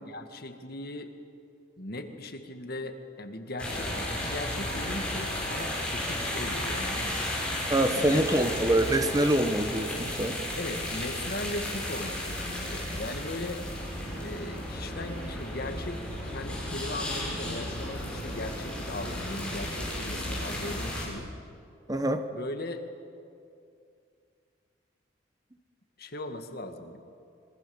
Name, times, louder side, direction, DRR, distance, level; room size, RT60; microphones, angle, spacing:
voice 1, 0.0-1.1 1.8-7.2 7.9-8.5 10.6-13.7 14.2-21.3 22.3-22.8 26.0-27.0, left 1 dB, 55° left, 6 dB, 1.9 m, -38 dB
sound 1, 3.6-21.1, left 1 dB, 5° left, 6.0 m, -34 dB
voice 2, 7.6-10.4 21.9-22.2, right 1 dB, 20° right, 8 dB, 1.1 m, -25 dB
27.0 x 23.5 x 7.2 m, 2.4 s
head